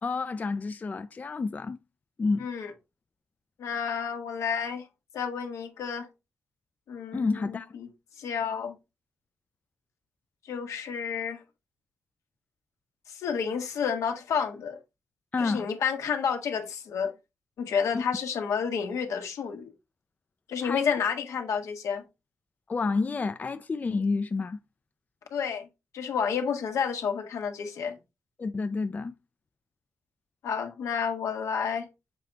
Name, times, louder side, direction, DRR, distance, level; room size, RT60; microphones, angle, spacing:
voice 1, 0.0-1.8 2.2-2.5 7.1-7.7 15.3-15.7 17.9-18.0 20.6-21.0 22.7-24.6 28.4-29.1, left 4 dB, 30° left, 0.4 m, -29 dB
voice 2, 2.4-2.7 3.6-4.9 5.1-6.1 6.9-7.9 8.2-8.8 10.5-11.4 13.1-14.8 15.4-17.1 17.6-19.7 20.5-22.0 25.3-25.7 25.9-28.0 30.4-31.9, left 6 dB, 85° left, 1.4 m, -30 dB
6.8 x 4.0 x 3.4 m
cardioid pair, 95°, 5 cm